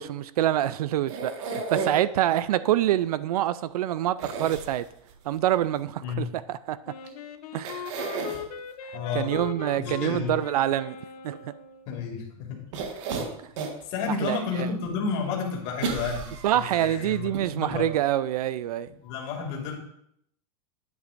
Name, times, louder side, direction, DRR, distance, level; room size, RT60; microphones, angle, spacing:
voice 1, 0.0-4.9 5.3-6.8 7.5-8.0 9.1-11.0 11.2-11.4 14.2-14.4 16.4-18.9, right 12 dB, 80° right, 0.4 m, -26 dB
sound 1, 1.1-2.2 4.2-5.1 7.1-7.2 7.6-8.4 12.7-13.8 14.3-14.4 15.8-16.8 17.3-17.4 17.7-17.8, right 5 dB, 55° right, 1.5 m, -32 dB
Wind instrument woodwind instrument, 6.9-11.9, left 8 dB, 80° left, 0.9 m, -39 dB
voice 2, 8.9-9.4 9.8-10.4 11.9-12.6 13.8-17.8 18.9-19.7, left 5 dB, 40° left, 2.5 m, -31 dB
10.5 x 9.5 x 2.6 m
supercardioid pair, 160°, 19 cm